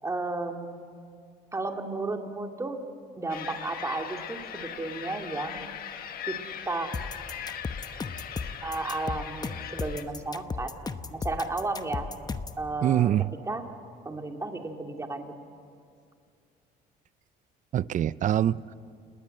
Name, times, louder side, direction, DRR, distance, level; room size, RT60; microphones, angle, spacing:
voice 1, 0.0-0.9 1.5-2.8 3.2-5.7 6.3-6.4 6.7-6.9 8.6-10.7 11.1-12.1 12.6-13.1 13.5-13.7 14.1-15.3, right 2 dB, 15° right, 2.2 m, -33 dB
sound 1, 3.3-10.0, left 9 dB, 60° left, 1.6 m, -40 dB
sound 2, 6.9-12.6, left 4 dB, 25° left, 1.0 m, -35 dB
voice 2, 12.8-13.3 17.7-18.7, right 11 dB, 50° right, 0.6 m, -24 dB
29.5 x 19.5 x 7.7 m
cardioid pair, 110°, 17 cm